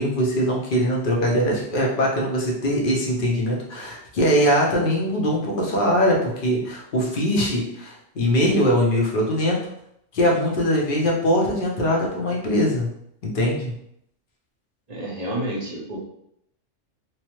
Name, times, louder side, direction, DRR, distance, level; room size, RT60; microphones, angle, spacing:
voice 1, 0.0-9.6 10.1-12.9 13.2-13.7, equal, 50° left, -2 dB, 0.8 m, -22 dB
voice 2, 14.9-16.0, right 1 dB, 40° right, -4 dB, 0.7 m, -29 dB
3.0 x 2.0 x 2.9 m, 0.75 s
omnidirectional pair, 1.3 m